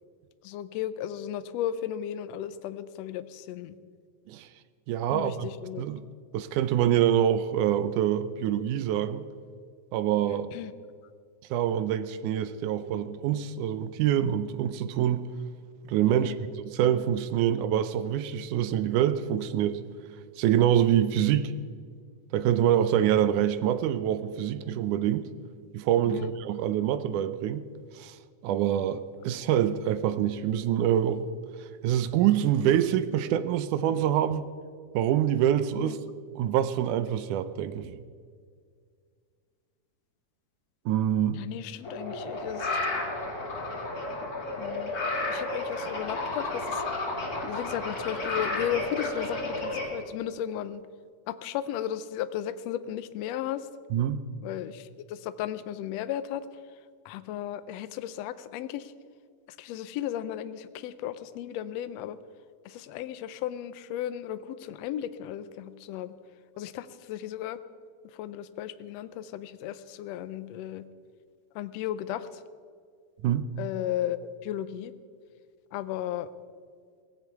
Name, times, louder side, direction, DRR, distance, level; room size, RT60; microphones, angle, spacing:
voice 1, 0.4-3.8 5.1-5.8 10.3-10.7 16.1-16.4 26.0-26.3 35.8-36.0 41.3-42.8 44.6-44.9 45.3-46.8 47.4-50.8 51.3-53.7 54.4-56.4 57.0-58.9 59.6-62.2 62.6-66.1 66.6-67.6 68.1-70.8 71.5-72.4 73.6-74.9 75.7-76.3, left 11 dB, 80° left, 13 dB, 1.5 m, -35 dB
voice 2, 4.9-5.5 5.8-6.1 6.3-9.3 9.9-10.5 11.5-15.3 15.9-16.4 16.7-19.8 20.4-21.5 22.3-25.3 25.7-27.6 28.0-28.2 28.4-31.3 31.6-34.5 34.9-36.0 36.4-38.0 40.9-41.4 53.9-54.2 73.2-73.5, right 10 dB, 80° right, 13 dB, 2.1 m, -25 dB
sound 1, 41.8-49.9, left 2 dB, 30° left, 2.3 m, -32 dB
18.0 x 15.5 x 4.7 m, 2.1 s
omnidirectional pair, 3.6 m